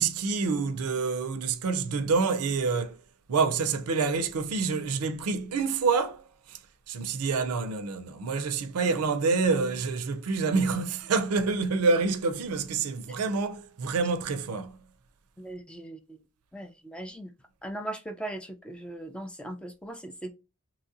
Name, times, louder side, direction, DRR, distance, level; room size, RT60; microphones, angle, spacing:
voice 1, 0.0-3.0 3.3-6.2 6.5-6.6 6.9-14.8, right 4 dB, 85° right, 0.5 m, -27 dB
voice 2, 15.4-16.2 16.5-17.3 17.6-20.3, right 1 dB, 5° left, 0.4 m, -39 dB
3.0 x 2.7 x 2.4 m
head